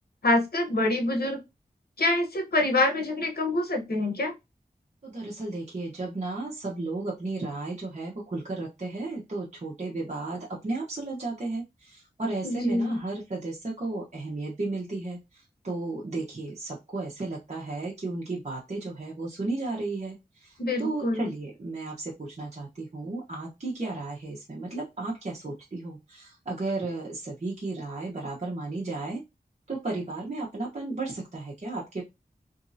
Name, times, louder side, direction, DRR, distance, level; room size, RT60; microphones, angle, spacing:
voice 1, 0.2-1.4 2.0-4.3 12.4-13.0 20.6-21.3, left 2 dB, 80° left, 3 dB, 0.9 m, -26 dB
voice 2, 5.0-29.2 29.7-32.0, right 2 dB, 45° right, -3 dB, 0.9 m, -34 dB
3.1 x 2.6 x 2.6 m, 0.23 s
wide cardioid pair, 60°, 16 cm